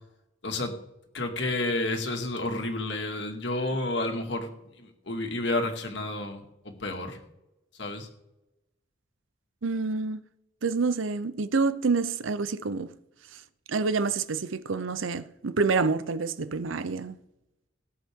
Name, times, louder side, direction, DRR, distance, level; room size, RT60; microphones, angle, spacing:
voice 1, 0.4-0.7 1.1-4.5 4.8-7.2 7.8-8.1, left 2 dB, 65° left, 2.1 m, -30 dB
voice 2, 9.6-10.2 10.6-12.9 13.7-17.2, right 4 dB, 90° right, 0.7 m, -27 dB
18.0 x 8.6 x 3.7 m
head